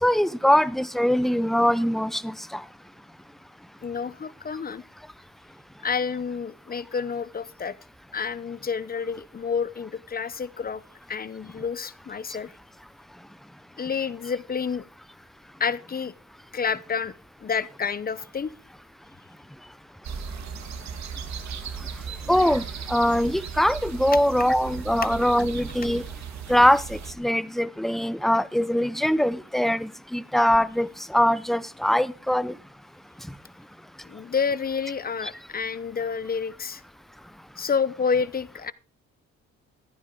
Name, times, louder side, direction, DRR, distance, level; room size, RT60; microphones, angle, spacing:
voice 1, 0.0-2.6 22.3-26.0 26.5-32.6, equal, ahead, 0.6 m, -22 dB
voice 2, 3.8-4.8 5.8-7.7 8.1-10.8 11.1-12.5 13.8-14.9 15.6-16.1 16.5-17.1 17.4-18.5 34.1-36.8 37.6-38.7, left 6 dB, 30° left, 0.8 m, -29 dB
sound 1, 20.0-27.1, right 6 dB, 65° right, 1.9 m, -36 dB
14.5 x 11.0 x 3.8 m
cardioid pair, 90°, 30 cm